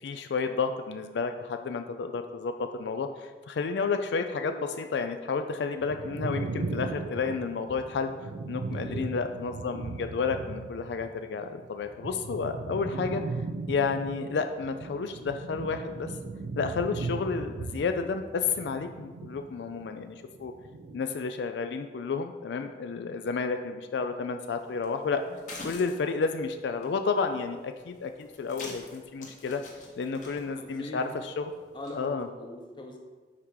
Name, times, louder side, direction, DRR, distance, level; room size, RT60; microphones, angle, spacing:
voice 1, 0.0-2.5 2.8-8.1 8.5-13.2 13.7-16.1 16.6-20.5 20.9-25.2 25.6-29.6 30.0-31.5 31.9-32.3, left 5 dB, 80° left, 7 dB, 0.4 m, -31 dB
sound 1, 5.8-11.1 11.4-20.0 20.3-21.0, right 3 dB, 90° right, 0.5 m, -38 dB
voice 2, 8.7-9.1 30.6-31.1 31.7-33.0, left 1 dB, 25° left, 1 dB, 0.8 m, -41 dB
sound 2, 24.4-32.1, left 2 dB, 45° left, 1.2 m, -48 dB
5.7 x 4.8 x 4.7 m, 1.4 s
head